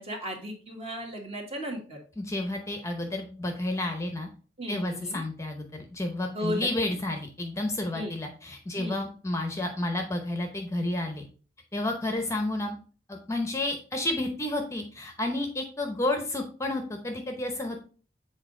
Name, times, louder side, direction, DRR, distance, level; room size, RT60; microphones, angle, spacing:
voice 1, 0.0-2.0 4.6-5.2 6.3-6.7 7.9-8.1 8.8-9.0, equal, 35° right, 2 dB, 1.4 m, -35 dB
voice 2, 2.2-4.3 4.7-11.2 11.7-12.8 13.1-17.8, left 1 dB, 15° left, 4 dB, 0.7 m, -31 dB
7.2 x 4.0 x 3.7 m, 0.39 s
head